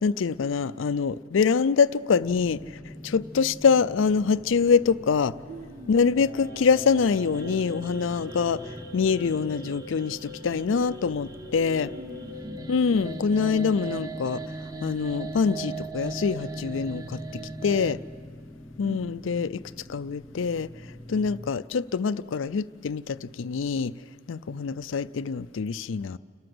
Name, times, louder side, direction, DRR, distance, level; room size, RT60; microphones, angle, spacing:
voice 1, 0.0-2.6 3.0-5.3 5.9-11.9 12.7-14.4 14.8-17.2 17.6-18.0 18.8-19.6 19.9-20.7 21.1-23.9 24.3-26.2, left 5 dB, 80° left, 17 dB, 0.4 m, -25 dB
sound 1, 2.2-21.5, left 1 dB, 20° left, 0.8 m, -45 dB
voice 2, 5.5-6.2 11.9-12.6 18.8-19.1, right 1 dB, 40° right, 14 dB, 0.5 m, -42 dB
sound 2, 6.0-17.9, right 4 dB, 20° right, 0.8 m, -40 dB
sound 3, 6.1-14.0, left 2 dB, 75° right, 3.7 m, -44 dB
30.0 x 13.0 x 7.8 m, 2.2 s
head